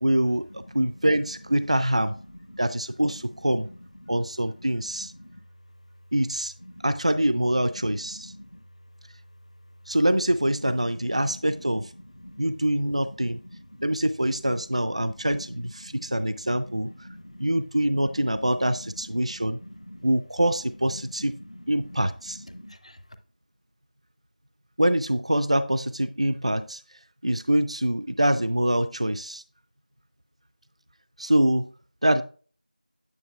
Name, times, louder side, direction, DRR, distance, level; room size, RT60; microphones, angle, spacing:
voice 1, 0.0-2.1 2.6-3.7 4.1-5.1 6.1-6.5 6.8-8.3 9.9-11.9 12.4-13.4 13.8-16.9 17.4-19.6 20.0-21.3 21.7-22.4 24.8-26.8 27.2-29.4 31.2-31.7 32.0-32.2, right 1 dB, 45° right, 0.3 m, -24 dB
voice 2, 8.1-8.5 11.8-11.9 12.2-12.4 13.2-14.0 15.0-15.1 15.9-16.0 16.7-17.4 18.9-19.0 19.4-20.1 21.4-21.5 22.5-23.0, equal, 45° left, 0.7 m, -46 dB
9.3 x 6.2 x 2.3 m
figure-of-eight pair, 175°, 5 cm